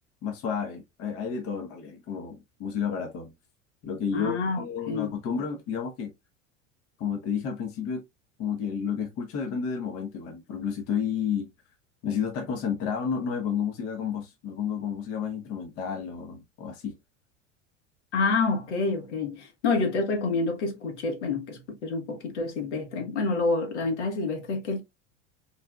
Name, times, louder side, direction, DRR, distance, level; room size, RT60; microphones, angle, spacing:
voice 1, 0.2-3.3 3.8-6.1 7.0-8.0 8.4-11.5 12.0-16.9, left 7 dB, 40° left, 0.9 m, -31 dB
voice 2, 4.1-5.1 18.1-24.8, left 3 dB, 65° left, 1.3 m, -28 dB
4.0 x 3.3 x 2.3 m
figure-of-eight pair, 75°, 37 cm